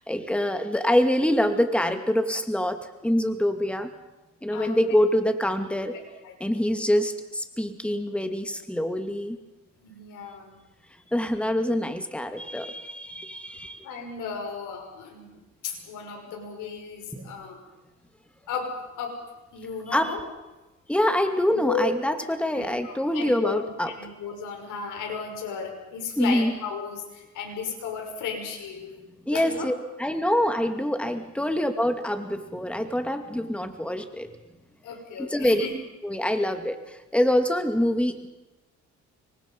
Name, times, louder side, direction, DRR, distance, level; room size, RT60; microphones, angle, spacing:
voice 1, 0.1-3.9 4.4-6.0 6.4-9.4 11.1-13.9 17.1-17.3 19.9-20.1 20.9-23.9 26.2-26.5 29.3-29.7 30.0-34.3 35.2-35.7 36.0-38.3, left 1 dB, 5° left, 6 dB, 2.5 m, -25 dB
voice 2, 9.8-10.6 13.8-17.6 18.5-19.2 19.5-20.2 21.5-22.2 22.5-23.6 23.9-28.9 29.2-29.7 34.8-35.7, left 5 dB, 85° left, 2 dB, 6.1 m, -34 dB
26.5 x 23.5 x 5.5 m, 1.1 s
cardioid pair, 90°, 30 cm